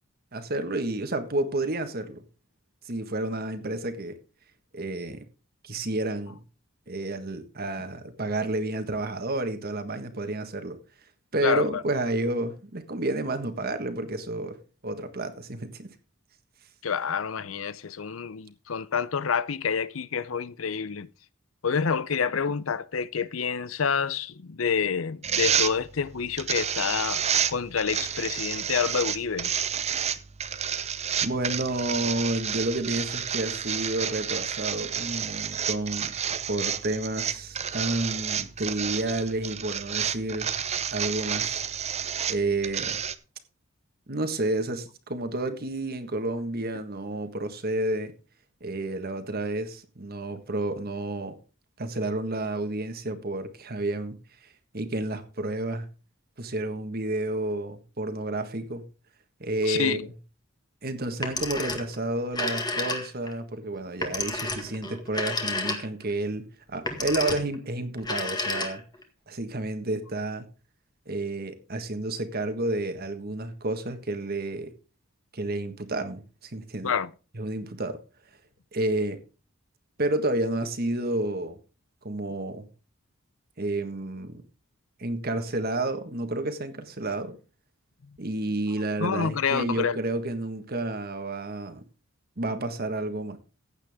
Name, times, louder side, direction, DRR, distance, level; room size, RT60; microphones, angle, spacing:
voice 1, 0.3-2.2 2.8-4.2 4.7-5.3 5.6-6.4 6.9-10.8 11.3-14.6 14.8-15.9 31.2-36.1 36.5-40.5 40.9-41.6 42.3-43.0 44.1-48.1 48.6-51.4 51.8-54.2 54.4-55.9 56.4-58.8 59.4-60.1 60.8-68.8 69.3-70.5 71.1-74.7 75.3-76.9 77.3-78.0 78.7-79.2 80.0-81.6 82.0-82.7 83.6-84.4 85.0-87.3 88.2-91.8 92.4-93.4, right 2 dB, 50° right, 1.5 m, -30 dB
voice 2, 11.4-11.8 16.8-21.1 21.6-27.2 27.5-29.5 59.7-60.1 76.8-77.1 89.0-90.0, left 6 dB, 75° left, 0.6 m, -28 dB
sound 1, 25.2-43.1, right 8 dB, 30° right, 0.7 m, -30 dB
Telephone, 61.1-62.0 62.3-63.3 64.0-66.1 66.7-67.6 68.0-69.0, left 3 dB, 20° left, 1.8 m, -31 dB
15.0 x 8.9 x 3.6 m
head